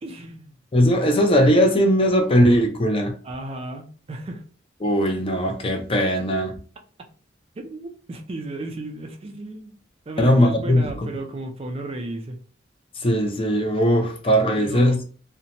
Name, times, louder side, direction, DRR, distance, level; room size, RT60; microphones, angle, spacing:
voice 1, 0.0-0.6 3.2-4.4 7.6-9.8 10.1-12.4 14.6-15.0, right 2 dB, 30° right, 0.3 m, -34 dB
voice 2, 0.7-3.1 4.8-6.6 10.2-11.1 13.0-15.1, equal, 30° left, 0.5 m, -19 dB
2.6 x 2.1 x 2.8 m
head